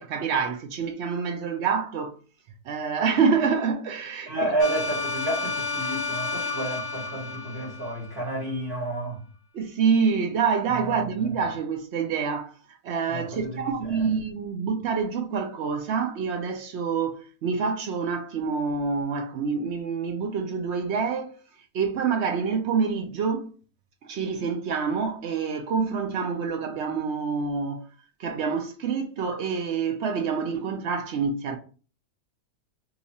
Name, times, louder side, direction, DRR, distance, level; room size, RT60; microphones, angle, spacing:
voice 1, 0.0-2.2 2.7-4.5 9.5-12.5 12.8-21.4 21.7-23.5 24.0-27.9 28.2-31.6, right 5 dB, 65° right, 0.7 m, -27 dB
voice 2, 4.3-9.2 10.8-11.0 13.1-14.1, right 2 dB, 45° right, 1.4 m, -30 dB
sound 1, 4.6-8.5, left 4 dB, 80° left, 1.1 m, -31 dB
2.9 x 2.4 x 4.0 m
omnidirectional pair, 1.6 m